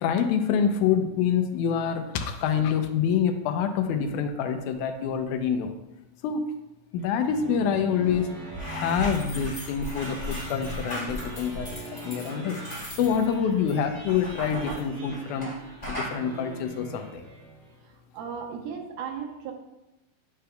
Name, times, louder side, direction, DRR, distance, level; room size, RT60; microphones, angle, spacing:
voice 1, 0.0-5.8 6.2-6.5 6.9-8.3 8.7-11.7 12.0-12.6 13.0-15.5 15.9-17.2, left 7 dB, 80° left, 6 dB, 2.0 m, -26 dB
sound 1, 7.0-17.8, right 2 dB, 50° right, 1.2 m, -42 dB
sound 2, 8.4-15.6 15.8-16.2, left 1 dB, 15° left, 1.6 m, -36 dB
voice 2, 18.1-19.5, right 7 dB, 90° right, 2 dB, 2.4 m, -35 dB
9.8 x 5.2 x 2.2 m, 0.96 s
omnidirectional pair, 3.5 m